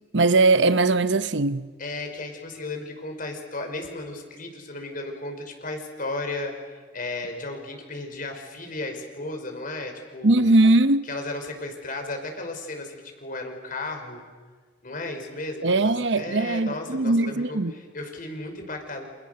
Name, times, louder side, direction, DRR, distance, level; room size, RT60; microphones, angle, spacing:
voice 1, 0.1-1.7 10.2-11.1 15.6-17.7, right 2 dB, 70° right, 0.9 m, -20 dB
voice 2, 1.8-10.5 11.1-14.2 14.8-19.1, left 2 dB, 50° left, 5.3 m, -34 dB
29.5 x 28.0 x 6.8 m
head